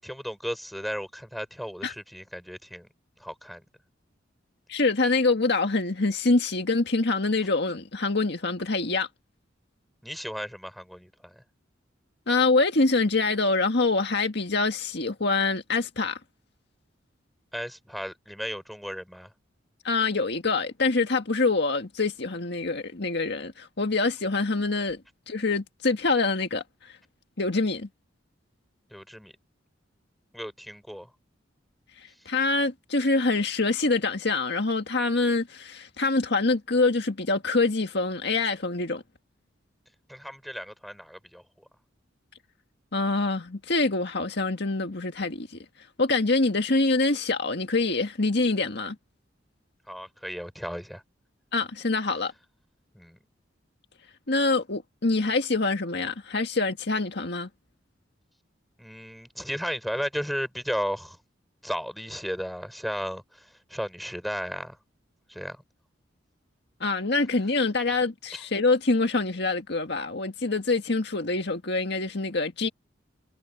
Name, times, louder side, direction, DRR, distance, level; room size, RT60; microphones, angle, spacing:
voice 1, 0.0-2.9 3.2-3.6 10.0-11.4 17.5-19.3 28.9-29.3 30.3-31.1 32.1-32.3 40.1-41.7 49.9-51.0 52.9-53.2 58.8-61.2 61.6-64.8 65.3-65.6 68.3-68.4, equal, ahead, 6.6 m, -35 dB
voice 2, 4.7-9.1 12.3-16.2 19.8-25.0 25.3-27.0 27.4-27.9 32.0-39.0 42.9-45.6 46.0-49.0 51.5-52.3 54.3-57.5 66.8-72.7, left 3 dB, 60° left, 1.8 m, -25 dB
head